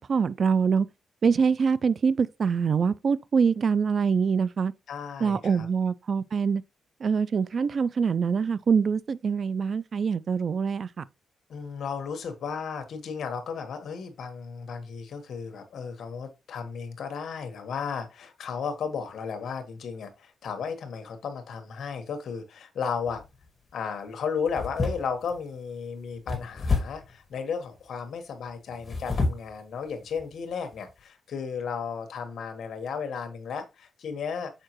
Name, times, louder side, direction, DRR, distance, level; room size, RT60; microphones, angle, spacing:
voice 1, 0.1-0.9 1.2-4.7 5.2-6.6 7.0-11.0, right 6 dB, 50° right, 0.3 m, -24 dB
voice 2, 4.9-5.7 11.5-23.2 23.7-34.5, left 6 dB, 70° left, 1.3 m, -34 dB
sound 1, 23.1-23.4 24.5-25.4 26.3-27.1 28.7-29.5 30.1-30.2 30.7-30.9, left 3 dB, 35° left, 2.0 m, -29 dB
6.6 x 4.8 x 3.0 m
cardioid pair, 110°, 0 cm